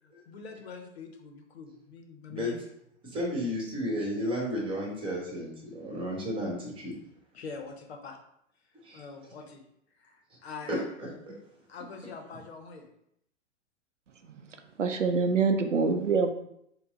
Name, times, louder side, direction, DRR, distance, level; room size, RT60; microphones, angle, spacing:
voice 1, 0.0-2.6 7.3-8.2 8.9-9.6 10.0-10.8 11.7-12.9, left 4 dB, 55° left, 4 dB, 0.8 m, -44 dB
voice 2, 3.0-6.9 8.8-9.0 10.7-11.1, equal, 15° right, -2 dB, 1.3 m, -32 dB
voice 3, 14.8-16.3, right 4 dB, 80° right, 6 dB, 0.6 m, -25 dB
4.5 x 2.2 x 3.7 m, 0.74 s
figure-of-eight pair, 105°, 37 cm